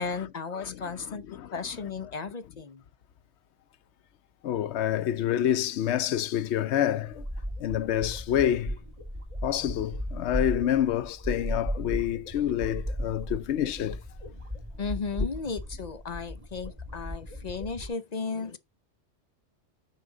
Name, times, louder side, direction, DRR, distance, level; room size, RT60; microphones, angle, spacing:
voice 1, 0.0-2.8 14.8-18.6, left 5 dB, 45° left, 0.7 m, -35 dB
voice 2, 0.5-1.5 4.4-7.3 7.6-8.8 9.4-14.0, left 11 dB, 75° left, 0.9 m, -28 dB
sound 1, 7.1-17.9, equal, 30° right, 2.8 m, -36 dB
9.5 x 4.8 x 3.8 m
omnidirectional pair, 1.1 m